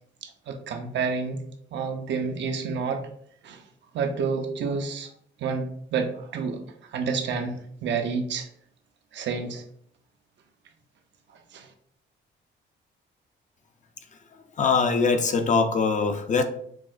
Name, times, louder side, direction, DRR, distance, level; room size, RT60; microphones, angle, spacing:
voice 1, 0.5-1.4 1.7-3.0 3.4-3.6 3.9-5.1 5.4-6.6 6.9-8.5 9.1-9.6 11.5-11.7, right 5 dB, 65° right, 5 dB, 0.6 m, -29 dB
voice 2, 14.6-16.4, left 4 dB, 40° left, 6 dB, 0.5 m, -22 dB
5.9 x 2.0 x 2.4 m, 0.64 s
cardioid pair, 90°, 20 cm